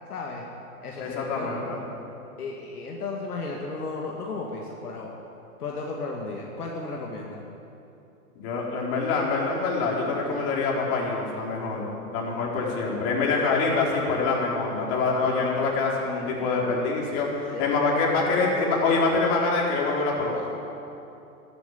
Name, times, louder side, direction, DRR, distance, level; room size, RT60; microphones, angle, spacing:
voice 1, 0.1-0.5 0.8-1.7 2.4-5.2 5.6-7.4 17.5-17.6, left 3 dB, 85° left, -1 dB, 2.1 m, -34 dB
voice 2, 1.0-1.8 8.4-20.5, left 3 dB, 45° left, -3 dB, 4.3 m, -25 dB
12.5 x 9.7 x 9.6 m, 2.8 s
hypercardioid pair, 115°, 44 cm